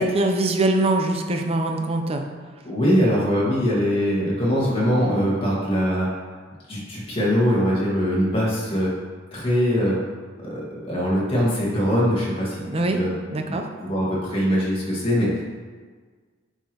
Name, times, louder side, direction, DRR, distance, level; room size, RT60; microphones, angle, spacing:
voice 1, 0.0-2.3 12.6-13.0 13.3-13.7, right 2 dB, 30° right, 4 dB, 0.6 m, -23 dB
voice 2, 2.6-6.1 6.7-8.9 9.3-10.0 10.4-12.6 13.0-13.1 13.5-13.6 13.8-15.4, equal, 30° left, -6 dB, 1.8 m, -22 dB
8.5 x 4.7 x 3.0 m, 1.5 s
head